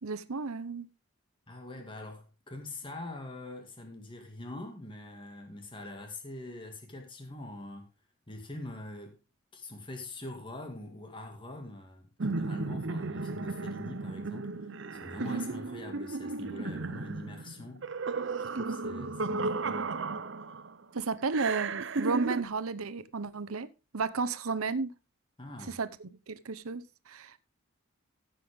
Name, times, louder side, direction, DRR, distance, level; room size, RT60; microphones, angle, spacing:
voice 1, 0.0-0.9 15.2-15.5 20.9-23.7 23.9-24.9 25.7-27.4, right 4 dB, 85° right, 0.9 m, -33 dB
voice 2, 1.5-7.9 8.3-9.1 9.5-17.8 18.5-19.9 25.4-25.8, left 1 dB, 25° left, 2.1 m, -44 dB
sound 1, 12.2-20.7 21.3-22.4, right 3 dB, 55° right, 0.7 m, -34 dB
15.5 x 7.7 x 3.6 m
head